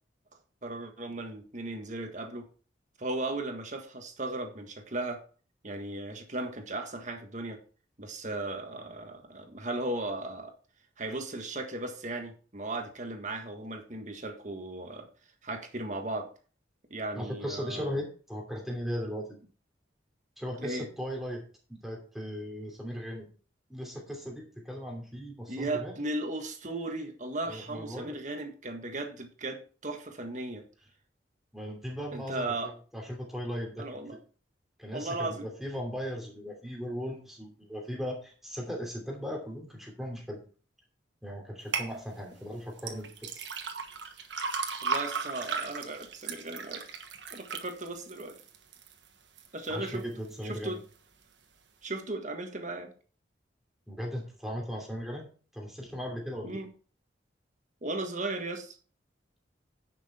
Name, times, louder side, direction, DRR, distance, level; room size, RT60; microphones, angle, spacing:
voice 1, 0.6-2.5 3.0-5.2 5.6-7.6 8.0-10.5 11.0-15.1 15.4-16.3 16.9-18.0 20.6-20.9 25.5-30.6 32.1-32.7 33.8-34.2 34.9-35.5 44.8-46.8 47.3-48.4 49.5-50.0 50.4-50.8 51.8-52.9 56.4-56.7 57.8-58.7, right 2 dB, 40° right, 5 dB, 1.6 m, -36 dB
voice 2, 17.1-19.4 20.4-21.4 21.7-23.3 23.7-25.9 27.5-28.2 31.5-33.9 34.8-40.4 41.2-43.4 49.7-50.8 53.9-55.3 55.5-56.6, equal, ahead, -1 dB, 2.8 m, -37 dB
sound 1, 41.7-41.9 42.8-48.9 49.4-49.9 50.4-50.5, right 5 dB, 70° right, 1.3 m, -35 dB
10.5 x 6.2 x 4.3 m, 0.40 s
head